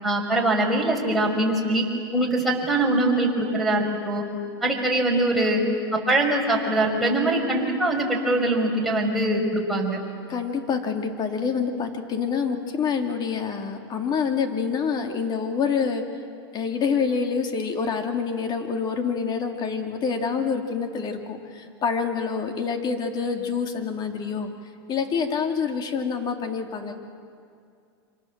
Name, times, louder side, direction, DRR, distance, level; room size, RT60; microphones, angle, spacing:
voice 1, 0.0-1.9 2.1-4.2 4.6-5.6 5.9-10.0, right 1 dB, ahead, 2 dB, 5.9 m, -23 dB
voice 2, 10.3-16.0 16.5-24.5 24.9-26.9, left 6 dB, 35° left, 4 dB, 2.9 m, -27 dB
28.0 x 25.5 x 7.5 m, 2.4 s
hypercardioid pair, 105°, 13 cm